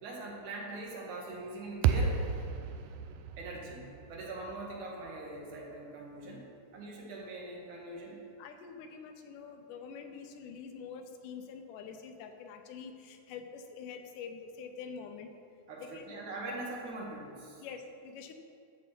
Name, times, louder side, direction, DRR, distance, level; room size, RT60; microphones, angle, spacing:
voice 1, 0.0-2.2 3.4-8.2 15.7-17.6, right 2 dB, 70° right, -2 dB, 3.0 m, -42 dB
sound 1, 1.8-6.1, right 6 dB, 85° right, 2.2 m, -34 dB
voice 2, 8.4-15.3 15.8-16.1 17.6-18.3, left 6 dB, 90° left, 6 dB, 2.4 m, -46 dB
12.5 x 7.5 x 4.4 m, 2.4 s
omnidirectional pair, 3.6 m